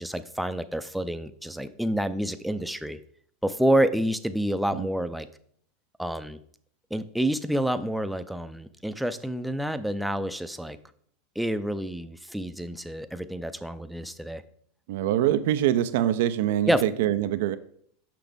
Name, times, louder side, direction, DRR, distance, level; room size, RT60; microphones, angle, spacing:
voice 1, 0.0-3.0 3.4-5.3 6.0-6.4 6.9-10.8 11.4-14.4 16.7-16.8, right 1 dB, ahead, 11 dB, 0.5 m, -28 dB
voice 2, 14.9-17.6, right 12 dB, 70° right, 12 dB, 0.4 m, -24 dB
6.0 x 5.9 x 3.5 m, 0.63 s
hypercardioid pair, 100°, 0 cm